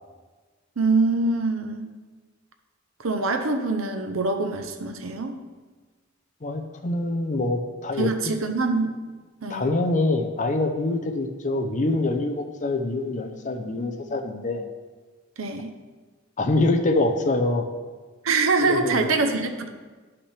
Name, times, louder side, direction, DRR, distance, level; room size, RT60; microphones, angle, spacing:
voice 1, 0.8-1.9 3.0-5.4 8.0-8.9 9.4-9.6 15.4-15.7 18.2-19.7, right 3 dB, 85° right, 6 dB, 0.7 m, -24 dB
voice 2, 6.4-8.1 9.5-14.6 16.4-17.7 18.6-19.1, left 2 dB, 40° left, 5 dB, 0.6 m, -25 dB
10.0 x 5.8 x 3.3 m, 1.3 s
head